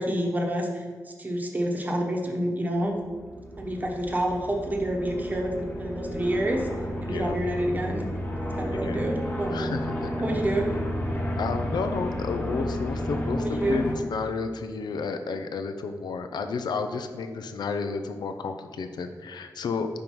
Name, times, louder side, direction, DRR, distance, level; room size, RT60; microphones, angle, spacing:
voice 1, 0.0-3.0 3.6-6.7 7.0-8.0 8.6-9.7 10.2-10.7 13.4-13.8, right 1 dB, 25° right, 1 dB, 1.0 m, -28 dB
sound 1, 3.0-13.9, equal, 25° left, 1.2 m, -32 dB
voice 2, 7.0-7.4 8.7-9.1 9.5-10.3 11.4-19.9, left 4 dB, 85° left, 7 dB, 0.5 m, -31 dB
5.4 x 5.1 x 4.6 m, 1.5 s
wide cardioid pair, 125°, 7 cm